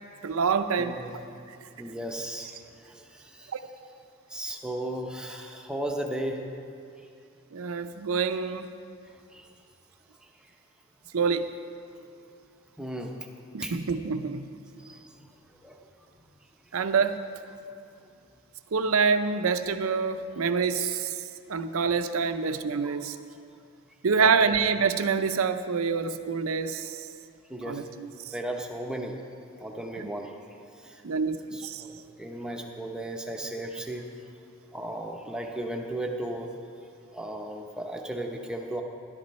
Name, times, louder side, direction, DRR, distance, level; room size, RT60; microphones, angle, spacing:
voice 1, 0.2-1.0 3.5-3.6 7.5-8.7 11.1-11.5 13.5-14.5 16.7-17.2 18.7-21.2 21.5-23.2 24.0-27.1 27.6-28.3 30.0-30.1 31.0-31.8, right 5 dB, 75° right, 10 dB, 0.6 m, -26 dB
voice 2, 0.8-1.1 1.8-2.6 2.9-3.5 4.3-6.4 9.3-9.5 12.8-13.1 13.6-13.8 14.8-15.1 15.6-15.8 22.8-23.0 24.2-24.5 27.5-27.8 28.3-29.2 29.6-30.3 30.8-31.0 31.5-34.1 34.7-36.5 37.1-38.8, right 1 dB, 5° right, 2 dB, 0.7 m, -35 dB
12.5 x 11.5 x 4.2 m, 2.4 s
head